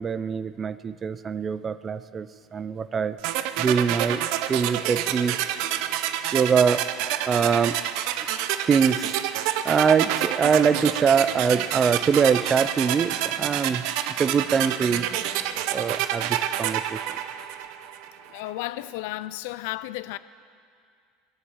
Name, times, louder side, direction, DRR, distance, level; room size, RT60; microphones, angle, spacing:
voice 1, 0.0-3.2 3.6-4.2 4.5-5.4 6.3-7.8 8.2-8.3 8.7-13.8 14.2-17.1, right 6 dB, 25° right, 0.4 m, -24 dB
sound 1, 3.2-18.1, right 11 dB, 65° right, 0.7 m, -28 dB
voice 2, 18.3-20.2, left 17 dB, 75° left, 0.4 m, -33 dB
20.5 x 7.3 x 8.7 m
supercardioid pair, 135°, 0 cm